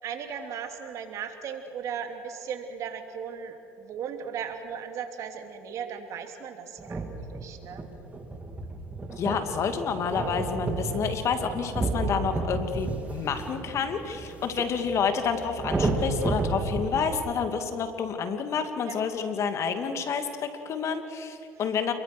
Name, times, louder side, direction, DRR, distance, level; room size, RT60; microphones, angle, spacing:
voice 1, 0.0-7.8 18.9-19.0 21.5-21.6, right 7 dB, 60° right, 5 dB, 3.1 m, -37 dB
sound 1, 6.8-17.2, right 3 dB, 25° right, 3.2 m, -32 dB
voice 2, 9.2-21.9, left 6 dB, 50° left, 7 dB, 2.7 m, -29 dB
28.5 x 22.5 x 6.2 m, 2.8 s
supercardioid pair, 85°, 6 cm